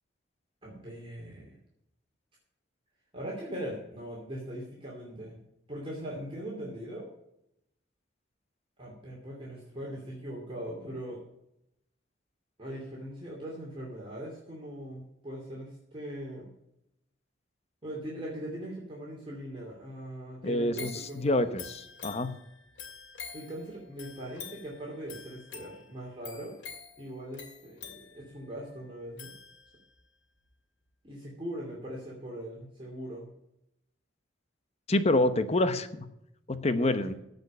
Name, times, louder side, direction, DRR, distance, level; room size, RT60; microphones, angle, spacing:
voice 1, 0.6-1.6 3.1-5.4 5.7-7.1 8.8-11.2 12.6-16.5 17.8-21.5 23.3-26.5 27.0-29.3 31.0-33.3 36.8-37.0, right 1 dB, 25° right, -4 dB, 2.7 m, -40 dB
voice 2, 20.4-22.3 34.9-36.1 36.5-37.1, left 1 dB, 35° left, 11 dB, 0.9 m, -27 dB
sound 1, 20.7-30.0 30.5-30.6, left 6 dB, 75° left, 2.5 m, -47 dB
15.5 x 5.3 x 6.6 m, 0.82 s
head